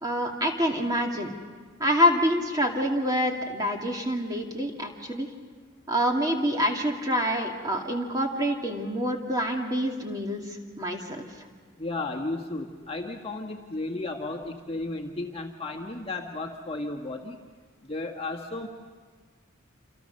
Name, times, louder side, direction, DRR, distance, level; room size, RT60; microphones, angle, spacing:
voice 1, 0.0-1.3 1.8-5.3 5.9-11.3, equal, 20° right, 1 dB, 2.5 m, -26 dB
voice 2, 11.8-17.4 17.8-18.7, left 2 dB, 25° left, 1 dB, 1.7 m, -34 dB
27.5 x 27.5 x 6.6 m, 1.5 s
head